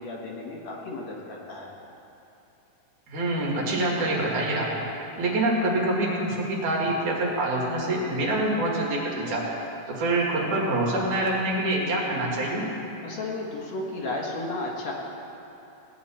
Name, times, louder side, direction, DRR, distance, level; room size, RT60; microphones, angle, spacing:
voice 1, 0.0-1.7 13.0-14.9, left 2 dB, 60° left, -2 dB, 2.4 m, -33 dB
voice 2, 3.1-4.8 5.2-9.4 9.9-12.7, right 1 dB, 75° right, -3 dB, 3.3 m, -26 dB
18.0 x 9.6 x 4.3 m, 3.0 s
omnidirectional pair, 3.6 m